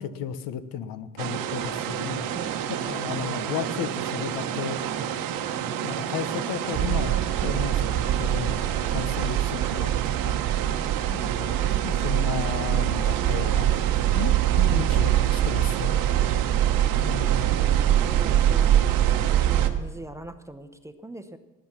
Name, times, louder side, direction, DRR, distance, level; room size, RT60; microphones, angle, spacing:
voice 1, 0.0-2.6 2.9-4.8 5.8-10.4 11.1-13.7 14.1-16.1 17.0-17.5, left 9 dB, 80° left, 12 dB, 1.2 m, -34 dB
sound 1, 1.2-19.7, right 9 dB, 75° right, 1.2 m, -30 dB
voice 2, 2.3-2.9 14.7-15.1 16.2-19.0 19.5-21.4, right 1 dB, 10° right, 9 dB, 0.8 m, -42 dB
sound 2, 6.7-19.8, right 12 dB, 45° right, 0.4 m, -24 dB
19.0 x 9.3 x 6.0 m, 1.1 s
cardioid pair, 120°, 34 cm